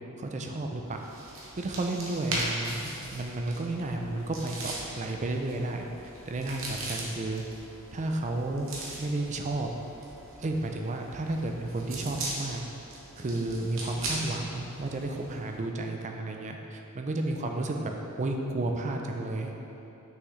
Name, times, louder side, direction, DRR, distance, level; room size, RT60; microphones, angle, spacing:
voice 1, 0.2-1.0 1.6-5.9 6.3-7.4 7.9-8.7 9.0-9.7 10.4-12.6 13.2-17.9 18.2-19.6, right 2 dB, 35° right, 3 dB, 0.5 m, -32 dB
sound 1, 0.9-15.6, right 1 dB, 65° right, 1.0 m, -39 dB
6.1 x 5.8 x 3.2 m, 2.9 s
head